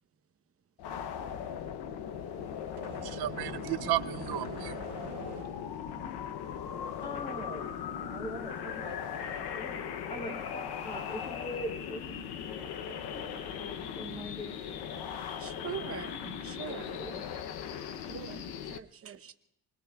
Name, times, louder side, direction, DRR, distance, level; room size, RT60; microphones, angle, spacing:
sound 1, 0.8-18.8, left 8 dB, 80° left, 0.8 m, -39 dB
voice 1, 2.8-5.4, right 14 dB, 80° right, 15 dB, 0.7 m, -35 dB
voice 2, 7.0-7.7 8.0-9.7 10.1-14.7 16.7-17.2, equal, 15° left, 1 dB, 3.2 m, -43 dB
voice 3, 15.4-17.0 18.1-19.3, right 8 dB, 35° right, 8 dB, 0.9 m, -43 dB
28.5 x 21.0 x 2.3 m, 0.83 s
cardioid pair, 165°, 39 cm